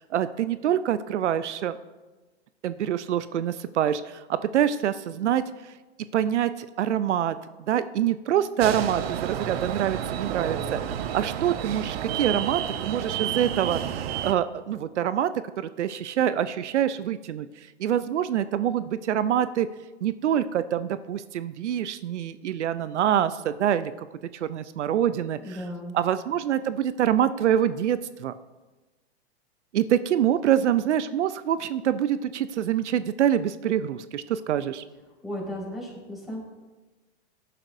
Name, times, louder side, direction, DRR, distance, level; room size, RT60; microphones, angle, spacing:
voice 1, 0.0-1.8 2.6-5.7 6.1-7.4 7.7-19.7 20.0-24.1 24.3-25.6 25.9-28.3 29.7-34.8, right 10 dB, 90° right, 14 dB, 0.6 m, -26 dB
sound 1, 8.6-14.3, right 9 dB, 60° right, 0.9 m, -30 dB
voice 2, 25.4-25.9 35.2-36.4, equal, ahead, -4 dB, 4.6 m, -35 dB
17.5 x 11.0 x 2.7 m, 1.2 s
hypercardioid pair, 130°, 34 cm